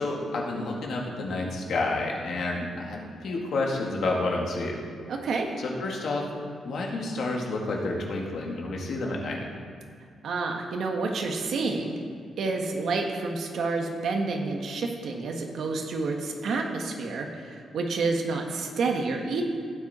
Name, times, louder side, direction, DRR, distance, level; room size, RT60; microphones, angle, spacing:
voice 1, 0.0-4.8 5.6-9.4, left 2 dB, 60° left, -1 dB, 2.1 m, -30 dB
voice 2, 5.1-5.5 10.2-12.0 12.4-19.4, right 3 dB, 65° right, 2 dB, 1.4 m, -29 dB
16.0 x 9.4 x 4.3 m, 2.2 s
wide cardioid pair, 160°, 0 cm